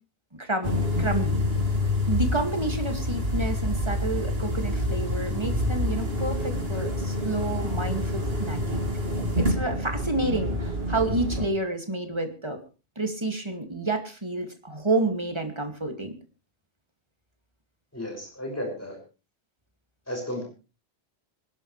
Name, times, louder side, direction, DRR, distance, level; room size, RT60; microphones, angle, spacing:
voice 1, 0.3-1.4 2.1-8.8 9.4-12.6 13.0-16.1, right 2 dB, 25° right, 5 dB, 2.3 m, -29 dB
sound 1, 0.6-11.5, left 1 dB, 60° right, 2.8 m, -27 dB
voice 2, 17.9-19.0 20.1-20.4, left 1 dB, 15° left, 0 dB, 6.3 m, -33 dB
26.0 x 11.5 x 3.3 m, 0.34 s
omnidirectional pair, 1.2 m